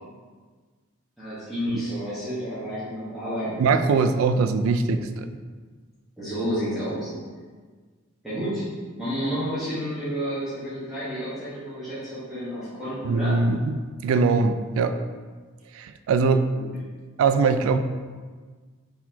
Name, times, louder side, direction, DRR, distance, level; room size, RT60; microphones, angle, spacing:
voice 1, 1.2-3.9 6.2-7.1 8.2-8.7 9.0-13.3 16.5-16.7, equal, ahead, -14 dB, 1.2 m, -30 dB
voice 2, 3.6-5.3 13.0-15.0 15.7-16.5 17.2-17.8, right 4 dB, 85° right, 11 dB, 0.3 m, -22 dB
4.3 x 4.0 x 2.9 m, 1.5 s
head